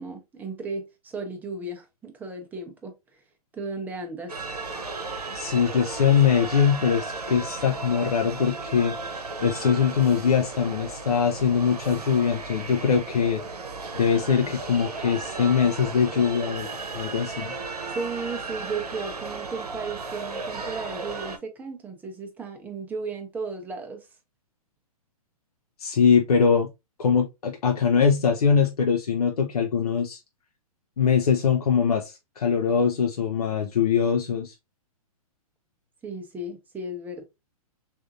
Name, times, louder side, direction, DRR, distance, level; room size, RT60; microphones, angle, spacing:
voice 1, 0.0-2.9 3.5-4.3 17.9-24.1 36.0-37.2, right 3 dB, 10° right, 0.7 m, -35 dB
sound 1, 4.3-21.4, right 3 dB, 90° right, 0.8 m, -35 dB
voice 2, 5.3-9.0 9.4-13.4 13.9-16.7 16.9-17.5 25.8-26.7 27.0-30.2 31.0-34.5, left 7 dB, 75° left, 0.6 m, -22 dB
3.6 x 2.6 x 2.5 m
hypercardioid pair, 125°, 19 cm